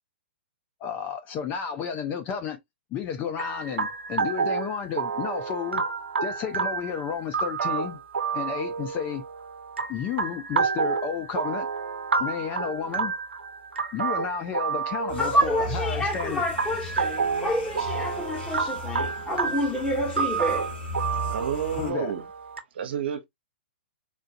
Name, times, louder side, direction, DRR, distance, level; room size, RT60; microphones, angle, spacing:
voice 1, 0.8-2.6 2.9-5.8 6.2-8.0 8.3-9.2 9.9-11.7 12.2-13.1 13.9-16.4 21.8-22.1, left 7 dB, 30° left, 0.6 m, -32 dB
sound 1, 3.4-22.6, right 5 dB, 85° right, 0.6 m, -30 dB
sound 2, 15.1-21.9, left 2 dB, 70° left, 2.0 m, -37 dB
voice 2, 15.2-20.7, equal, 10° left, 1.6 m, -28 dB
voice 3, 21.1-22.3 22.7-23.3, right 8 dB, 65° right, 0.9 m, -31 dB
3.7 x 2.5 x 2.6 m
hypercardioid pair, 125°, 6 cm